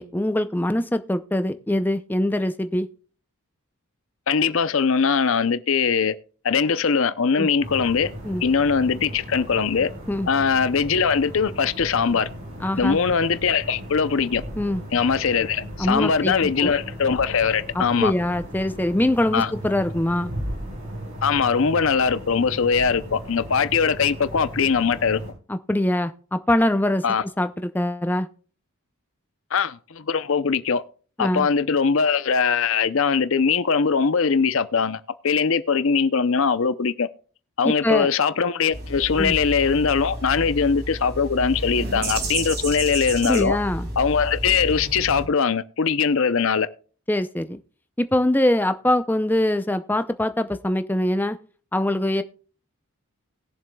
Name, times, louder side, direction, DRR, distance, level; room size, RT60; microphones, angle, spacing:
voice 1, 0.0-2.9 7.4-7.5 8.2-8.4 10.1-10.3 12.6-13.0 14.6-14.8 15.8-16.7 17.7-20.3 25.5-27.0 27.4-28.3 31.2-31.5 37.6-38.1 39.2-39.4 43.2-43.9 47.1-47.6 48.0-51.4 51.7-52.2, left 1 dB, 10° left, 0.5 m, -23 dB
voice 2, 4.3-6.1 6.4-8.1 8.4-9.9 10.3-12.3 12.8-14.4 14.9-18.1 19.3-19.5 21.2-25.2 27.0-27.2 29.5-30.8 31.2-37.1 37.6-43.6 44.0-46.7, left 5 dB, 65° left, 0.6 m, -21 dB
sound 1, 7.6-25.3, equal, 70° right, 4.7 m, -36 dB
sound 2, 38.7-45.2, right 1 dB, 45° right, 2.6 m, -31 dB
20.0 x 7.2 x 2.3 m
head